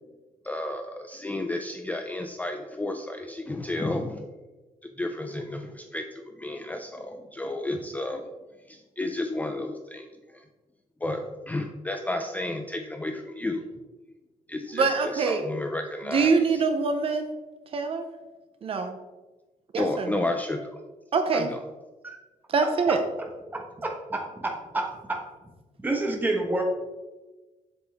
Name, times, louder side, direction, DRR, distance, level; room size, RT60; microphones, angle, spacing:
voice 1, 0.4-4.2 4.8-8.2 8.7-10.1 10.3-10.4 11.0-13.6 14.5-16.4 19.8-20.8 21.3-21.6, left 2 dB, 10° left, 5 dB, 0.4 m, -32 dB
voice 2, 14.7-15.4 16.1-17.3 17.7-18.0 18.6-19.0 19.7-20.2 21.1-21.5 22.5-23.0, right 4 dB, 45° right, 6 dB, 0.6 m, -24 dB
voice 3, 23.5-25.2 25.8-26.6, right 2 dB, 15° right, 1 dB, 1.2 m, -29 dB
8.0 x 7.1 x 3.5 m, 1.2 s
wide cardioid pair, 175°, 14 cm